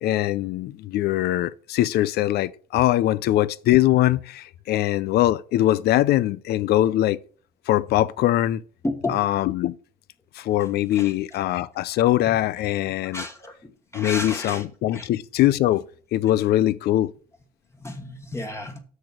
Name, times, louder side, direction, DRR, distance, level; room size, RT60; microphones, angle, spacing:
voice 1, 0.0-7.2 7.7-8.6 9.1-9.7 10.4-13.3 13.9-15.8 16.1-17.1, left 14 dB, 70° left, 0.5 m, -22 dB
voice 2, 8.8-9.2 11.0-11.1 13.1-13.5 13.9-14.6 14.9-15.1 17.8-18.8, left 2 dB, 15° left, 1.4 m, -31 dB
6.7 x 6.5 x 6.1 m
cardioid pair, 110°, 17 cm